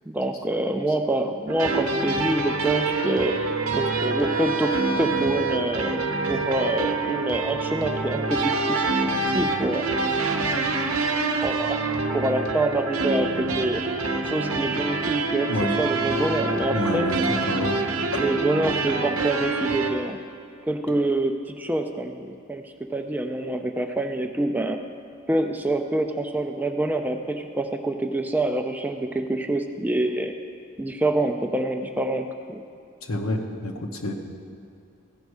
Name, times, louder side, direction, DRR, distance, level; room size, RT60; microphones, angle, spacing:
voice 1, 0.1-3.4 3.7-8.9 9.3-9.9 11.4-13.8 14.2-15.5 15.8-17.1 18.1-20.2 20.7-24.8 25.3-30.3 30.8-32.6, right 1 dB, 10° right, 5 dB, 0.4 m, -26 dB
sound 1, 1.5-19.9, right 3 dB, 70° right, 0.8 m, -26 dB
voice 2, 16.7-17.2 17.5-17.8 33.0-34.1, left 1 dB, 70° left, 3 dB, 1.0 m, -28 dB
15.5 x 5.3 x 4.7 m, 2.5 s
head